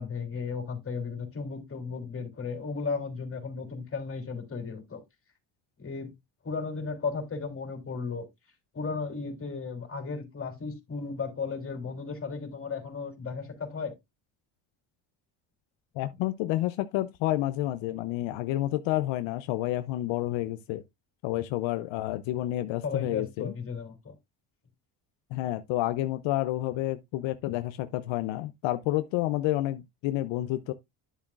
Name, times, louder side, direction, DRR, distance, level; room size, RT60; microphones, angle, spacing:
voice 1, 0.0-5.0 5.8-6.1 6.4-8.3 8.7-13.9 22.8-24.1, left 5 dB, 30° left, 3.2 m, -35 dB
voice 2, 16.0-20.8 21.2-23.5 25.3-30.7, left 15 dB, 80° left, 0.7 m, -29 dB
10.5 x 7.2 x 2.4 m
cardioid pair, 105°, 45 cm